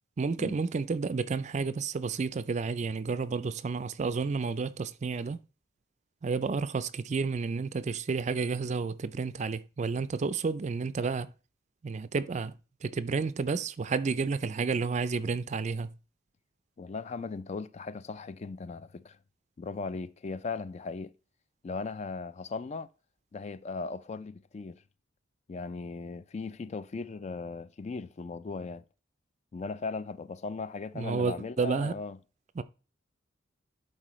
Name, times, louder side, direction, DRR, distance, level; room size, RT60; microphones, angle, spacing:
voice 1, 0.2-5.4 6.2-11.3 11.8-12.5 12.8-15.9 31.0-32.0 32.6-32.7, right 4 dB, 35° right, 0.4 m, -31 dB
voice 2, 16.8-19.2 19.6-21.1 21.6-22.9 23.3-24.8 25.5-28.8 29.5-32.2, left 4 dB, 35° left, 0.3 m, -38 dB
11.5 x 4.2 x 3.1 m
head